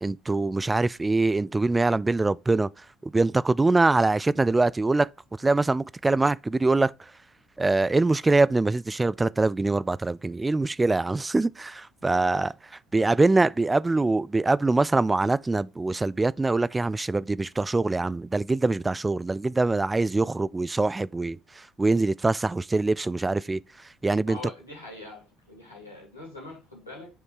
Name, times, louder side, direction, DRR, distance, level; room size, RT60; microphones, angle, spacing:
voice 1, 0.0-2.7 3.0-5.1 5.4-6.9 7.6-12.5 12.9-23.6 24.0-24.4, right 3 dB, 20° right, 0.3 m, -23 dB
voice 2, 12.1-12.4 13.9-14.0 18.0-18.1 24.3-27.1, left 2 dB, 90° left, 2.6 m, -43 dB
7.0 x 3.2 x 4.7 m
figure-of-eight pair, 55°, 0 cm